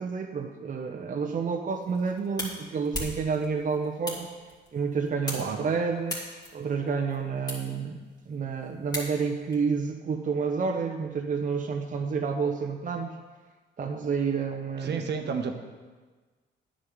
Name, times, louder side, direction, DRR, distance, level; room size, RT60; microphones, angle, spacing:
voice 1, 0.0-4.3 4.7-6.2 6.5-13.1 13.8-15.0, right 5 dB, 40° right, 2 dB, 0.9 m, -29 dB
sound 1, 1.7-9.5, left 1 dB, 20° left, 3.0 m, -40 dB
voice 2, 5.3-5.7 14.8-15.5, right 5 dB, 60° right, 5 dB, 1.1 m, -31 dB
9.7 x 5.4 x 7.9 m, 1.4 s
cardioid pair, 90°, 20 cm